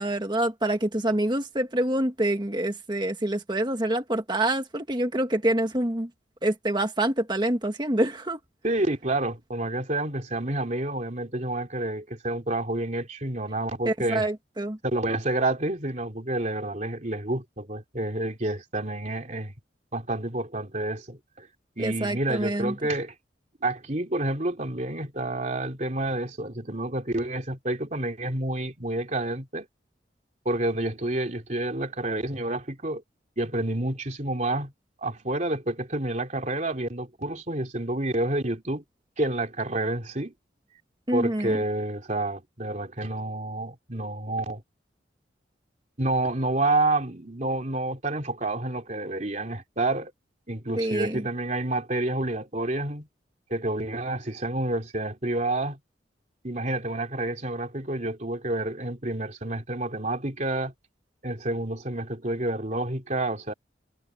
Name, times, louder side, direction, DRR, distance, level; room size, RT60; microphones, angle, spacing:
voice 1, 0.0-6.1 6.4-8.4 13.8-14.8 21.8-22.7 41.1-41.6 50.8-51.2, right 1 dB, 25° right, 1.7 m, -26 dB
voice 2, 8.6-14.2 14.8-19.5 19.9-21.5 21.8-23.1 23.6-29.7 30.4-33.0 33.4-34.7 35.0-38.8 39.2-40.3 41.1-44.6 46.0-50.1 50.5-53.1 53.5-55.8 56.4-60.7 61.2-63.5, right 2 dB, 40° right, 3.1 m, -29 dB
head